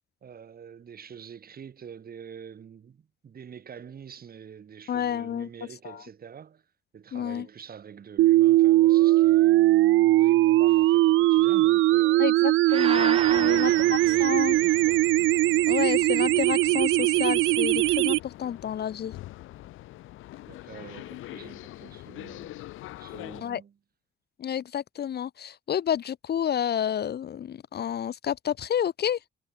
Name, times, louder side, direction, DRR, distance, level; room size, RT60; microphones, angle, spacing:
voice 1, 0.2-6.7 6.9-12.3 13.2-15.0 20.5-22.6 23.0-23.8, right 7 dB, 50° right, 2.9 m, -45 dB
voice 2, 4.9-5.5 5.8-6.0 7.1-7.5 12.2-14.6 15.7-19.1 23.4-23.6 24.4-29.2, left 9 dB, 55° left, 1.2 m, -30 dB
sound 1, 8.2-18.2, right 17 dB, 80° right, 0.5 m, -20 dB
sound 2, 12.7-15.0, right 6 dB, 30° right, 0.7 m, -33 dB
sound 3, 13.1-23.4, left 16 dB, 90° left, 1.5 m, -44 dB
cardioid pair, 90°, 20 cm